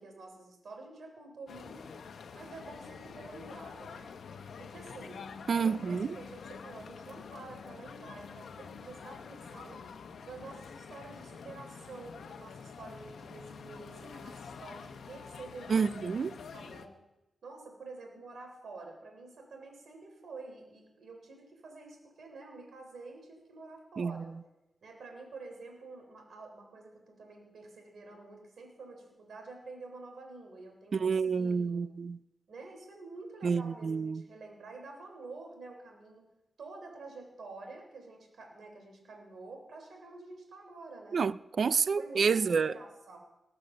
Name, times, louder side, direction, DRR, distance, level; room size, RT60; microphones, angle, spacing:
voice 1, 0.0-1.8 2.3-4.1 4.6-5.2 5.6-9.8 10.2-16.2 16.5-17.0 17.4-24.3 24.8-31.8 32.5-36.2 36.6-41.3 42.0-43.2, right 3 dB, 75° right, 3.9 m, -48 dB
sound 1, 1.5-16.9, left 6 dB, 85° left, 0.9 m, -47 dB
voice 2, 5.5-6.2 15.7-16.4 24.0-24.2 30.9-32.2 33.4-34.2 41.1-42.7, right 5 dB, 60° right, 0.4 m, -29 dB
19.5 x 7.0 x 6.8 m
wide cardioid pair, 100°, 0 cm